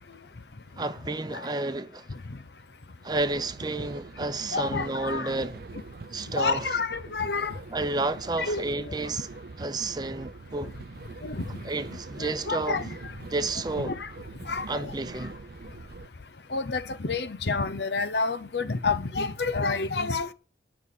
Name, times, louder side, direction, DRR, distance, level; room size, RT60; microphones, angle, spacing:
voice 1, 0.8-2.0 3.0-5.6 6.1-6.6 7.7-9.3 9.6-10.7 11.6-12.8 13.3-13.9 14.7-15.4, right 2 dB, 25° right, 0.7 m, -31 dB
sound 1, 3.1-16.1, right 3 dB, 60° right, 0.5 m, -43 dB
voice 2, 4.5-5.3 6.4-7.6 8.4-8.9 11.2-11.4 12.2-12.9 13.8-14.1 14.5-14.9 16.5-20.3, left 4 dB, 70° left, 0.8 m, -29 dB
10.5 x 5.7 x 8.4 m
head